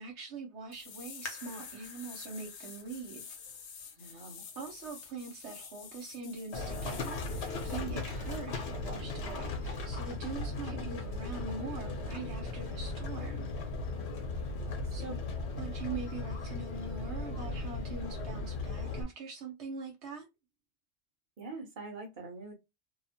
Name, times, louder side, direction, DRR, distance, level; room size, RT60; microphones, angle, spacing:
voice 1, 0.0-3.2 4.0-4.2 4.6-13.5 14.9-15.2 15.6-20.3, right 4 dB, 75° right, 1.0 m, -43 dB
sound 1, 0.7-7.8 8.2-8.4, left 6 dB, 90° left, 0.9 m, -49 dB
sound 2, 1.2-4.6 5.2-5.3 5.9-6.3 6.7-6.8, left 3 dB, 40° left, 0.8 m, -51 dB
voice 2, 4.0-4.4 7.9-8.2 14.5-15.2 21.4-22.5, right 2 dB, 45° right, 1.1 m, -45 dB
Livestock farm animals working animals, 6.5-19.0, left 3 dB, 70° left, 1.1 m, -37 dB
2.8 x 2.1 x 2.8 m
omnidirectional pair, 1.2 m